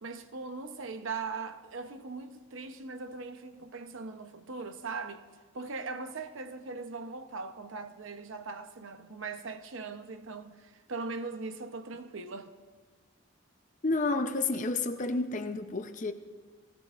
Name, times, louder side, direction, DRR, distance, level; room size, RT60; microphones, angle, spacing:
voice 1, 0.0-5.3 5.5-12.5, right 4 dB, 65° right, 0.8 m, -40 dB
voice 2, 13.8-16.1, left 3 dB, 35° left, 0.6 m, -30 dB
18.5 x 16.5 x 2.5 m
head